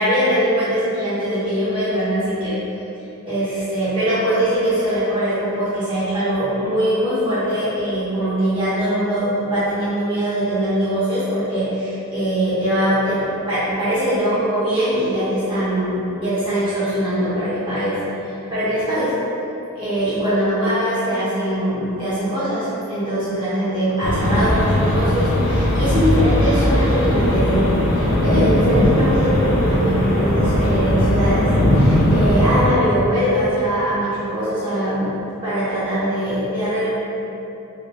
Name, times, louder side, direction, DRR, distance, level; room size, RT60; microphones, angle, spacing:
voice 1, 0.0-2.6 3.3-18.0 18.5-19.1 19.7-27.7 28.0-35.1 35.4-36.9, right 1 dB, 20° right, -13 dB, 1.2 m, -21 dB
sound 1, 24.0-32.7, left 1 dB, 60° left, 0.5 m, -18 dB
3.2 x 2.6 x 3.0 m, 2.9 s
head